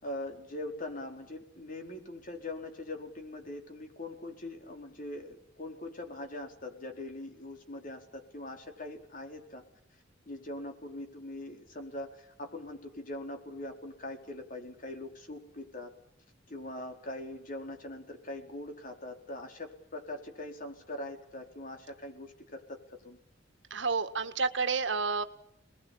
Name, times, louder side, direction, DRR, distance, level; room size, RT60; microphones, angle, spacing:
voice 1, 0.0-9.6 10.3-15.9 16.5-22.8 23.0-23.2, left 1 dB, 45° left, 4 dB, 4.5 m, -42 dB
voice 2, 23.7-25.2, right 4 dB, 65° right, 10 dB, 1.7 m, -30 dB
28.0 x 20.5 x 8.7 m, 0.75 s
head